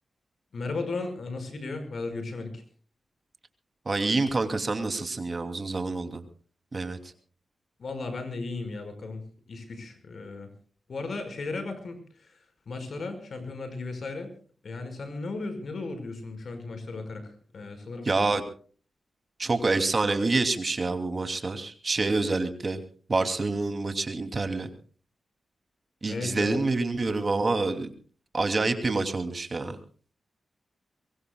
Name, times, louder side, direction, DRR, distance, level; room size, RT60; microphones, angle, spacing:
voice 1, 0.5-2.6 7.8-9.2 9.5-10.5 10.9-14.3 14.6-18.1 26.1-26.6, left 3 dB, 65° left, 8 dB, 5.3 m, -35 dB
voice 2, 3.9-6.2 6.7-7.0 18.0-18.4 19.4-22.8 23.1-24.7 26.0-27.9 28.3-29.8, right 3 dB, 40° right, 7 dB, 2.8 m, -27 dB
23.5 x 23.0 x 2.3 m, 0.42 s
cardioid pair, 75°, 0 cm